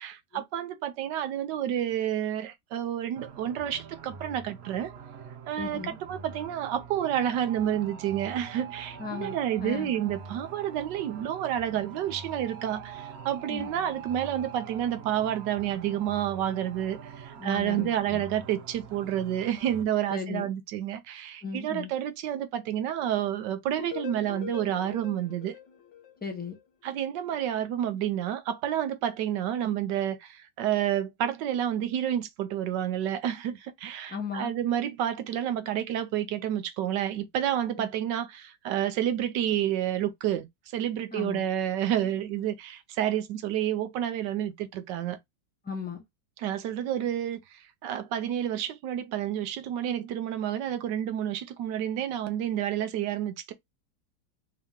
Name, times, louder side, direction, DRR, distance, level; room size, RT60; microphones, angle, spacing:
voice 1, 0.5-4.9 5.5-5.8 6.1-8.9 9.2-12.8 13.3-17.0 17.4-21.0 21.5-25.5 26.8-30.1 30.6-33.5 33.8-38.3 38.7-40.4 40.7-42.5 43.0-45.2 46.4-47.4 47.8-53.5, right 11 dB, 80° right, 1.3 m, -29 dB
sound 1, 3.1-19.8, right 7 dB, 60° right, 0.7 m, -44 dB
voice 2, 5.6-6.0 9.0-9.9 13.5-13.7 17.4-18.3 20.1-20.5 21.4-21.9 26.2-26.6 34.1-34.5 37.8-37.9 41.1-41.4 45.6-46.0, left 5 dB, 10° left, 0.6 m, -36 dB
sound 2, 23.7-26.6, left 9 dB, 85° left, 1.6 m, -42 dB
3.5 x 2.9 x 3.6 m
omnidirectional pair, 1.9 m